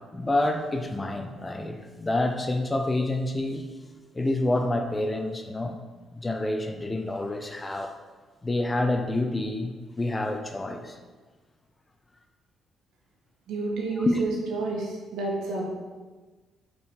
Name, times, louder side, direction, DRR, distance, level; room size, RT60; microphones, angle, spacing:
voice 1, 0.0-3.7 4.1-5.8 6.1-7.9 8.4-11.0 13.9-14.2, left 2 dB, 20° left, 0.6 m, -28 dB
voice 2, 13.5-15.7, right 3 dB, 80° right, 1.7 m, -30 dB
5.2 x 5.1 x 4.8 m
cardioid pair, 90°, 0 cm